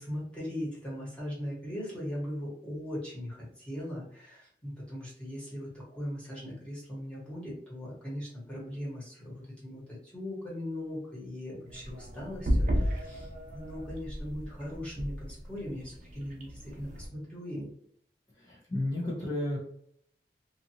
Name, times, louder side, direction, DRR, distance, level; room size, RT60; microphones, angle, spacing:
voice 1, 0.0-17.7 19.0-19.1, equal, 5° left, -7 dB, 1.2 m, -39 dB
sound 1, 11.7-17.1, equal, 45° right, 0.5 m, -33 dB
voice 2, 18.3-19.6, left 1 dB, 25° left, -5 dB, 0.6 m, -33 dB
2.7 x 2.5 x 2.7 m, 0.68 s
head